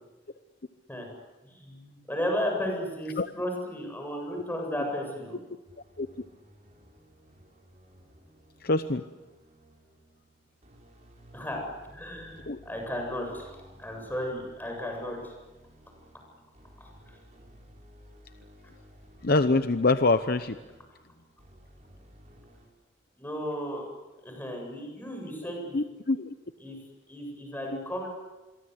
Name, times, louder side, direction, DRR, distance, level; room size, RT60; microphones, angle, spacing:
voice 1, 1.4-5.4 11.3-11.6 11.9-15.3 16.8-16.9 23.2-23.9 24.2-25.8 26.6-26.8 27.1-28.1, equal, 10° left, 2 dB, 7.6 m, -34 dB
sound 1, 5.6-22.7, equal, 40° right, 6.7 m, -56 dB
voice 2, 8.6-9.0 12.5-12.6 19.2-20.6 25.7-26.3, left 3 dB, 60° left, 10 dB, 0.9 m, -25 dB
27.0 x 23.0 x 8.1 m, 1.1 s
head